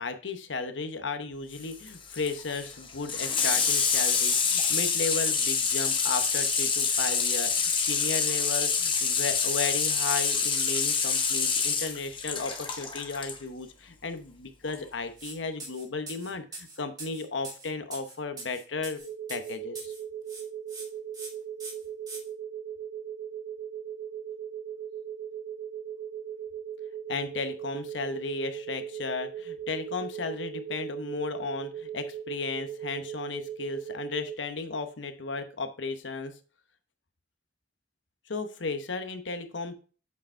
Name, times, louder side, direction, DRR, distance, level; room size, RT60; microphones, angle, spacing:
voice 1, 0.0-19.0 19.3-19.9 27.1-36.3 38.3-39.7, left 4 dB, 90° left, 9 dB, 1.0 m, -34 dB
Water tap faucet / Sink (filling or washing), 1.5-13.4 14.7-14.8, left 5 dB, 30° left, 1.1 m, -27 dB
sound 1, 15.2-15.3 15.6-20.0 20.3-20.9 21.1-21.3 21.6-22.2, right 3 dB, 20° right, 1.9 m, -42 dB
sound 2, 19.0-34.4, right 9 dB, 60° right, 2.1 m, -39 dB
8.2 x 5.1 x 3.4 m, 0.37 s
head